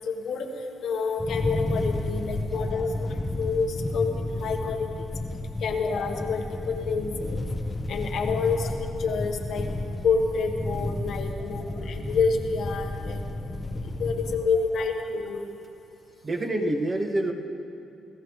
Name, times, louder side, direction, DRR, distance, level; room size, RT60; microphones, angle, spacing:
voice 1, 0.0-5.1 5.6-7.4 7.9-9.7 10.0-13.6 14.0-15.5, left 5 dB, 70° left, 3 dB, 1.4 m, -28 dB
sound 1, 1.2-14.4, left 1 dB, 15° left, 1.1 m, -32 dB
voice 2, 16.2-17.3, right 1 dB, 30° right, 2 dB, 1.8 m, -27 dB
28.0 x 14.5 x 3.2 m, 2.7 s
cardioid pair, 90°, 0 cm